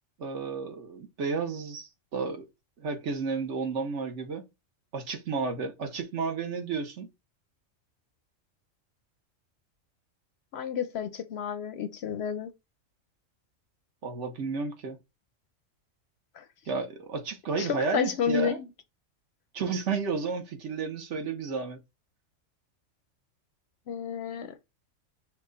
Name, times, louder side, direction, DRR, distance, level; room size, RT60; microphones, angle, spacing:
voice 1, 0.2-2.5 2.8-4.4 4.9-7.1 14.0-15.0 16.7-18.6 19.5-21.8, right 4 dB, 65° right, 1.3 m, -32 dB
voice 2, 10.5-12.5 16.3-16.5 17.6-18.7 23.9-24.6, left 7 dB, 65° left, 0.7 m, -31 dB
5.9 x 2.3 x 3.8 m
omnidirectional pair, 1.3 m